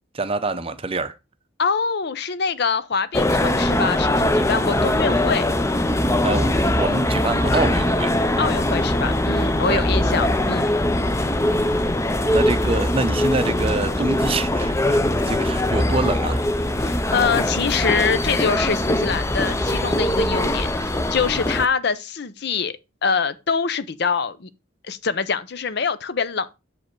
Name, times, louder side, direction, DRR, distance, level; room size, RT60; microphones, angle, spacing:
voice 1, 0.1-1.1 6.2-8.1 9.6-9.8 11.6-11.9 12.3-16.4, right 2 dB, 25° right, 0.6 m, -26 dB
voice 2, 1.6-5.4 8.4-10.7 16.8-24.5 24.8-26.6, left 5 dB, 55° left, 0.6 m, -24 dB
sound 1, 3.1-21.7, left 1 dB, 15° left, 0.5 m, -21 dB
7.3 x 5.3 x 4.5 m
head